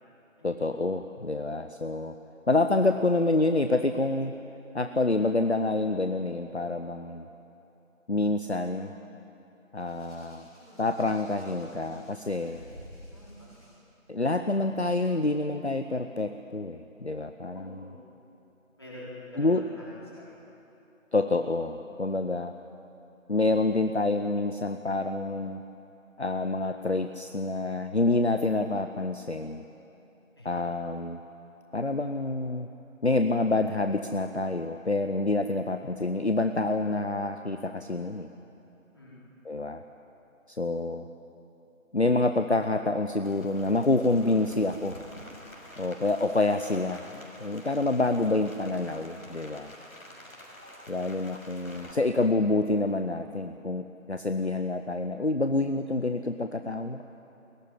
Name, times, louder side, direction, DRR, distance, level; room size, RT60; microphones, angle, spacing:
voice 1, 0.4-2.2 2.5-4.3 4.7-7.3 8.1-8.9 9.7-10.5 10.8-12.6 14.1-17.8 19.4-19.6 21.1-22.5 23.3-25.6 26.2-29.6 30.4-31.2 31.7-32.7 33.0-38.3 39.4-39.8 40.5-41.1 41.9-45.0 45.8-47.1 47.4-49.7 50.9-57.0, left 2 dB, 55° left, 7 dB, 0.9 m, -27 dB
Hands, 9.8-13.7 14.7-14.9, equal, 5° right, 3.2 m, -52 dB
voice 2, 13.1-13.5 17.5-18.0 18.8-19.9 20.1-20.3 30.4-30.7 38.9-39.1 47.9-48.0 50.0-50.2, left 1 dB, 20° left, -8 dB, 4.8 m, -47 dB
Rain, 43.2-51.9, left 1 dB, 85° left, 6.5 m, -48 dB
21.5 x 18.0 x 10.0 m, 2.9 s
figure-of-eight pair, 175°, 41 cm